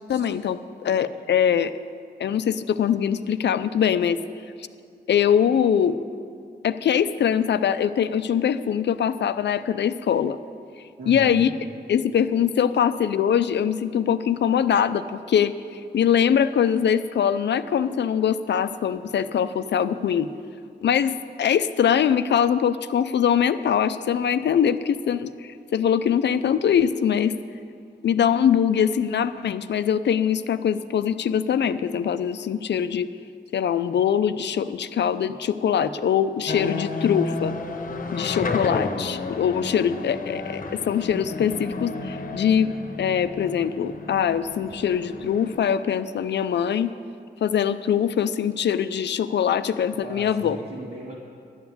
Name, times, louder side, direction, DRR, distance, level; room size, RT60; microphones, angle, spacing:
voice 1, 0.1-1.7 2.2-4.2 5.1-6.0 6.6-10.4 11.1-11.5 11.9-20.3 20.8-27.3 28.0-33.1 33.5-37.5 38.1-42.7 43.0-46.9 47.4-50.6, left 8 dB, 80° left, 12 dB, 0.5 m, -22 dB
voice 2, 11.0-11.5 50.0-51.2, right 1 dB, 60° right, -6 dB, 1.9 m, -37 dB
sound 1, 36.5-45.6, left 3 dB, 50° left, 1.0 m, -32 dB
11.5 x 7.1 x 9.5 m, 2.4 s
cardioid pair, 75°, 18 cm